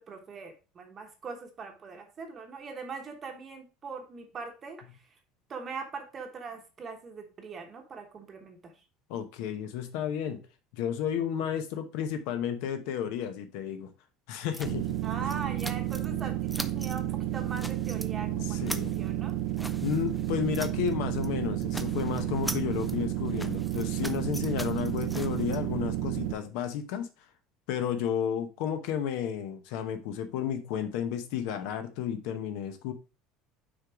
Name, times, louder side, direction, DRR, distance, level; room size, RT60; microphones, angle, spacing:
voice 1, 0.0-5.1 5.5-8.8 15.0-19.3, right 5 dB, 25° right, 4 dB, 1.0 m, -41 dB
voice 2, 9.1-10.4 10.7-13.9 14.3-15.0 15.2-15.3 18.3-18.9 19.8-27.1 27.7-32.9, left 9 dB, 65° left, 8 dB, 0.8 m, -32 dB
sound 1, 14.5-16.2 16.5-17.0 17.3-18.1 18.4-20.9 21.2-21.3 21.6-25.6, equal, ahead, 0.3 m, -41 dB
sound 2, 14.7-26.3, right 13 dB, 60° right, 0.5 m, -31 dB
6.2 x 3.9 x 4.6 m, 0.31 s
cardioid pair, 170°, 0 cm